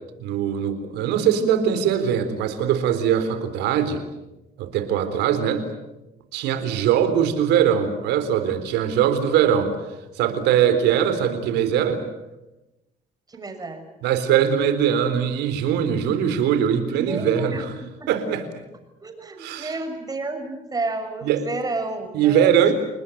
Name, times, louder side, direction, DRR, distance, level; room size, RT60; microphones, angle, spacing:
voice 1, 0.2-4.0 4.6-5.7 6.3-9.7 10.2-12.0 14.0-17.8 18.1-18.6 19.4-19.8 21.2-21.5 22.1-22.7, right 9 dB, 85° right, 10 dB, 3.9 m, -21 dB
voice 2, 13.3-13.8 16.9-17.6 18.0-18.1 19.0-22.5, right 3 dB, 20° right, 5 dB, 6.5 m, -31 dB
29.0 x 20.0 x 9.2 m, 1.0 s
cardioid pair, 110°, 17 cm